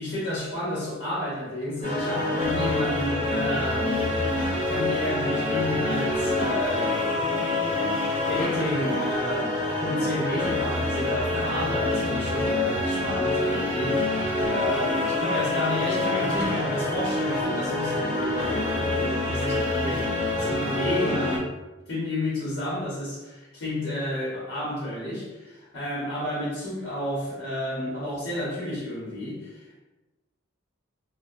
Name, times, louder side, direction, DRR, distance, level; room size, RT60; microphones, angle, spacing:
voice 1, 0.0-4.1 4.6-7.1 7.6-20.1 20.3-21.5 21.9-29.8, left 1 dB, 70° left, -8 dB, 0.8 m, -31 dB
sound 1, 1.8-21.4, left 2 dB, 35° left, 0.8 m, -26 dB
2.6 x 2.0 x 2.4 m, 1.1 s
head